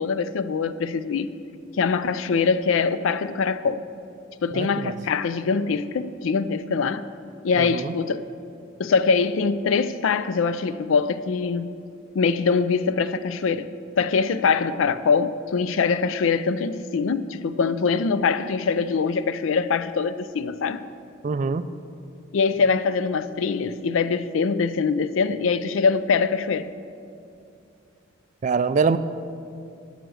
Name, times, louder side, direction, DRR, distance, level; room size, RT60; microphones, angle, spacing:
voice 1, 0.0-1.3 1.8-3.8 4.4-7.1 7.4-8.2 8.8-11.7 12.1-13.7 14.0-20.8 22.3-26.7, left 5 dB, 75° left, 0.4 m, -23 dB
voice 2, 4.5-4.9 7.6-7.9 21.2-21.6 28.4-29.0, right 5 dB, 35° right, 0.3 m, -24 dB
9.4 x 6.5 x 6.2 m
head